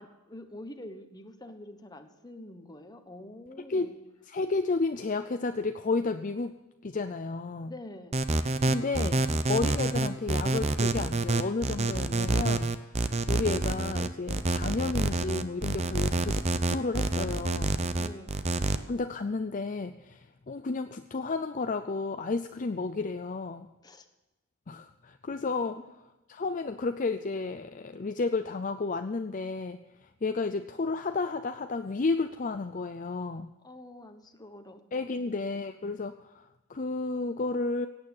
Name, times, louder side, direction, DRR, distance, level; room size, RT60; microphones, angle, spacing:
voice 1, 0.0-3.9 7.7-8.2 18.0-18.4 23.8-24.1 33.6-34.8 35.2-35.4, left 1 dB, 20° left, 6 dB, 1.2 m, -46 dB
voice 2, 4.2-6.5 6.8-7.7 8.7-9.2 9.5-17.8 18.9-23.7 24.7-25.8 26.3-33.5 34.9-37.9, left 3 dB, 35° left, 8 dB, 0.5 m, -32 dB
sound 1, 8.1-18.8, right 2 dB, 30° right, 0.7 m, -27 dB
17.0 x 9.0 x 7.2 m, 1.0 s
head